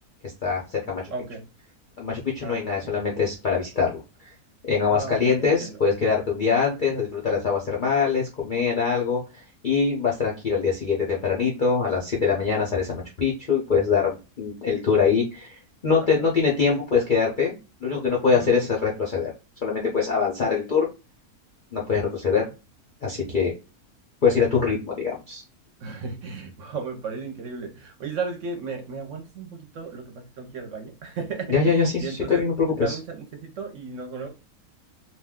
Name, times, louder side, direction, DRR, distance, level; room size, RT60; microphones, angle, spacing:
voice 1, 0.4-1.0 2.0-3.9 4.2-4.3 4.7-19.3 19.6-20.9 21.7-22.4 23.0-23.5 24.2-25.4 31.5-33.0, left 5 dB, 55° left, -3 dB, 0.5 m, -23 dB
voice 2, 1.1-1.4 2.4-3.0 4.9-5.8 16.2-16.3 18.2-18.6 25.8-32.4 32.7-34.3, right 5 dB, 60° right, 3 dB, 0.9 m, -35 dB
2.5 x 2.2 x 3.5 m, 0.29 s
omnidirectional pair, 1.6 m